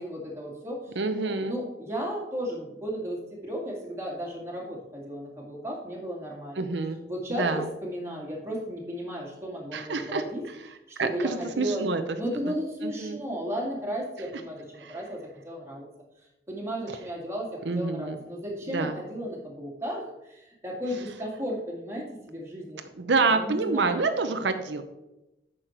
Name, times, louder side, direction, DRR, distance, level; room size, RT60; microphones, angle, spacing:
voice 1, 0.0-6.7 7.1-10.4 10.9-11.9 12.1-15.2 15.4-15.9 16.5-22.9 23.2-24.1, equal, 15° right, -2 dB, 2.1 m, -34 dB
voice 2, 1.0-1.6 6.6-7.0 7.4-7.7 9.7-10.2 11.0-12.2 12.4-12.6 12.8-13.2 14.8-15.0 17.7-18.2 18.7-19.0 23.0-24.8, right 3 dB, 90° right, 8 dB, 0.7 m, -27 dB
8.9 x 6.4 x 4.4 m, 0.96 s
head